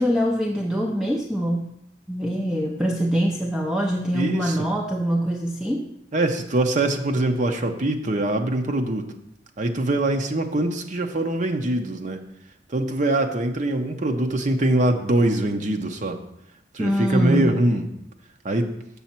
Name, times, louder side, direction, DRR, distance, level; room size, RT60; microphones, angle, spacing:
voice 1, 0.0-1.7 2.1-5.9 16.8-17.6, equal, 5° right, 0 dB, 0.5 m, -24 dB
voice 2, 4.1-4.7 6.1-9.1 9.6-12.2 12.7-16.2 16.7-17.9 18.4-18.7, right 1 dB, 40° right, 5 dB, 0.7 m, -23 dB
7.0 x 6.3 x 4.4 m, 0.79 s
head